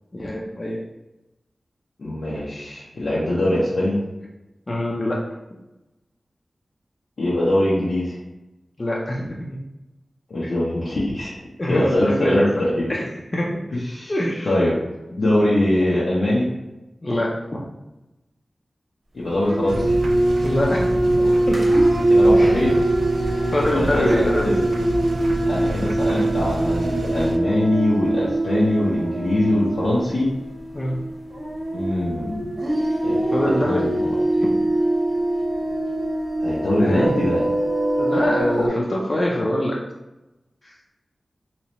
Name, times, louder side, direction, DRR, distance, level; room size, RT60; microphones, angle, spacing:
voice 1, 0.1-0.8 4.7-5.2 8.8-9.6 11.6-12.6 12.9-13.0 13.3-13.6 14.1-14.5 17.0-17.6 20.4-21.2 21.5-21.6 22.3-22.6 23.5-24.5 30.7-31.0 33.3-33.8 34.4-34.5 36.8-37.2 38.0-39.8 40.6-40.7, left 1 dB, 35° left, -3 dB, 0.5 m, -24 dB
voice 2, 2.0-4.0 7.2-8.2 10.3-12.9 13.7-14.1 14.5-14.7 15.1-16.5 19.1-19.9 22.1-22.9 23.4-24.6 25.5-30.3 31.7-32.5 33.0-33.4 33.6-34.1 36.4-37.4, left 1 dB, 80° left, -8 dB, 0.7 m, -22 dB
sound 1, 19.4-38.7, right 1 dB, 45° right, 0.8 m, -22 dB
sound 2, 19.7-27.4, right 2 dB, 85° right, 0.3 m, -28 dB
3.2 x 2.8 x 2.9 m, 1.0 s
wide cardioid pair, 70°, 0 cm